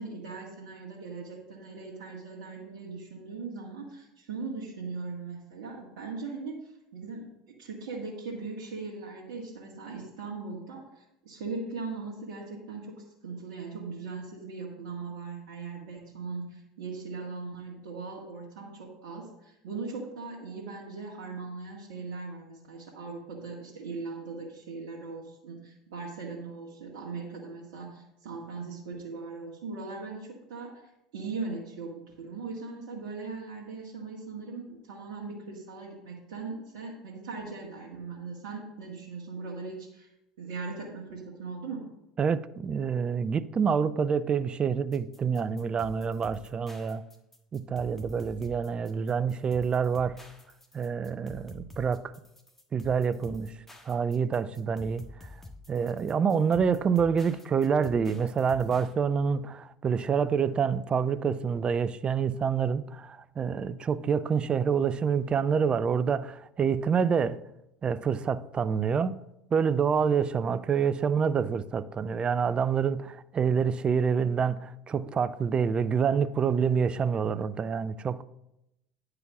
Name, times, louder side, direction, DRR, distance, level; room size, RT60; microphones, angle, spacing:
voice 1, 0.0-7.3 7.6-40.1 40.4-41.9, right 4 dB, 70° right, 1.8 m, -39 dB
voice 2, 42.2-47.0 47.5-50.2 50.7-52.1 52.7-53.5 53.9-55.3 55.7-67.4 67.8-69.2 69.5-78.2, right 6 dB, 30° right, 0.5 m, -27 dB
sound 1, 44.9-58.9, left 2 dB, 10° left, 1.5 m, -49 dB
9.8 x 4.8 x 6.0 m
hypercardioid pair, 75°, 3 cm